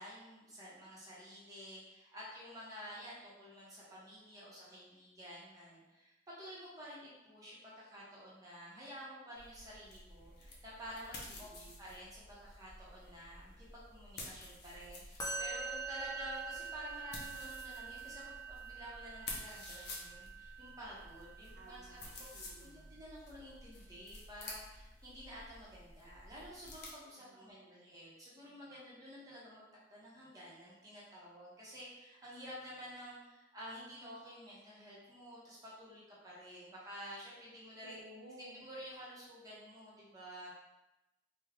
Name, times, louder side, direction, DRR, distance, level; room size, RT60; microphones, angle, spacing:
voice 1, 0.0-29.6 29.9-38.0 38.6-40.5, equal, 20° right, -7 dB, 0.8 m, -51 dB
sound 1, 9.4-26.9, left 2 dB, 55° left, 0.7 m, -51 dB
voice 2, 11.3-11.9 21.5-23.0 27.2-27.9 37.8-38.7, right 1 dB, 55° right, -3 dB, 0.8 m, -57 dB
Musical instrument, 15.2-22.5, right 5 dB, 20° left, 0.6 m, -45 dB
3.5 x 2.2 x 3.4 m, 0.99 s
head